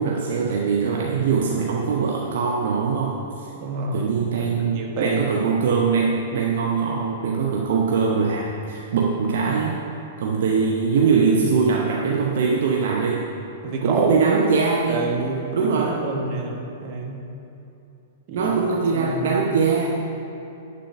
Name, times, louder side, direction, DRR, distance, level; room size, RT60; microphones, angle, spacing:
voice 1, 0.0-3.5 3.9-9.8 10.2-13.3 13.8-15.1 15.5-16.0 18.3-20.0, right 5 dB, 55° right, -2 dB, 0.7 m, -22 dB
voice 2, 3.6-5.3 13.6-14.2 14.9-17.2 18.3-18.5 18.9-19.5, right 3 dB, 40° right, 0 dB, 1.1 m, -28 dB
10.5 x 3.8 x 5.7 m, 2.8 s
figure-of-eight pair, 105°, 0 cm